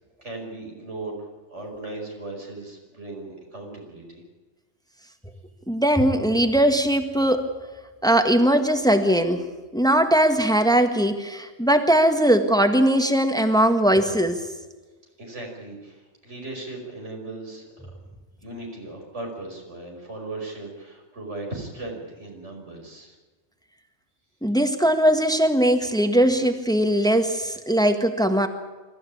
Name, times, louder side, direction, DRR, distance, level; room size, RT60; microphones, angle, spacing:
voice 1, 0.2-4.2 15.2-17.7 18.4-23.2, right 2 dB, 90° right, 0 dB, 5.7 m, -37 dB
voice 2, 5.7-7.5 8.0-9.4 9.7-14.4 24.4-28.5, right 1 dB, 5° left, 7 dB, 1.6 m, -20 dB
25.5 x 14.5 x 8.6 m, 1.2 s
omnidirectional pair, 1.2 m